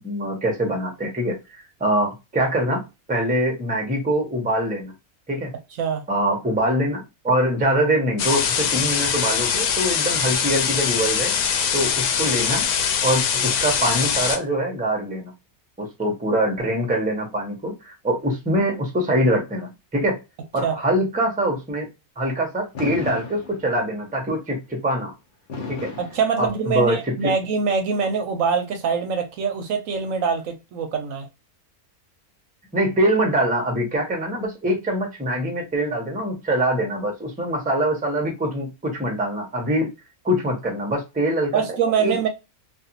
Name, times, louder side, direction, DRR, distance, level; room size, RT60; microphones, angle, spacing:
voice 1, 0.0-4.9 5.3-5.5 6.1-11.3 11.7-12.7 13.0-15.3 15.8-20.2 20.5-21.9 22.2-25.1 25.7-25.9 26.4-27.0 27.2-27.3 32.7-39.9 40.2-41.6 42.0-42.3, right 1 dB, 10° right, 0.6 m, -24 dB
sound 1, 8.2-14.4, left 7 dB, 90° left, 1.1 m, -22 dB
Fireworks, 22.7-24.1 25.5-27.0, left 4 dB, 45° left, 0.7 m, -34 dB
voice 2, 26.0-31.3 41.5-42.3, right 6 dB, 70° right, 0.9 m, -24 dB
2.5 x 2.5 x 2.7 m
omnidirectional pair, 1.5 m